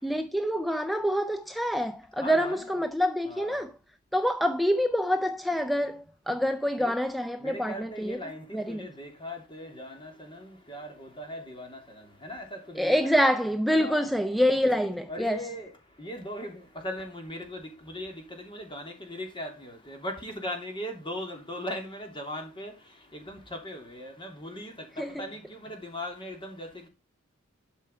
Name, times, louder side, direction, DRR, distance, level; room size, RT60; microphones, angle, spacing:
voice 1, 0.0-3.7 4.1-8.9 12.7-15.5 25.0-25.3, equal, ahead, 0.4 m, -26 dB
voice 2, 2.2-2.8 3.3-3.7 6.8-6.9 7.4-13.1 13.8-14.1 14.6-14.8 15.1-26.9, left 1 dB, 25° left, 2.8 m, -39 dB
12.0 x 5.5 x 5.6 m
head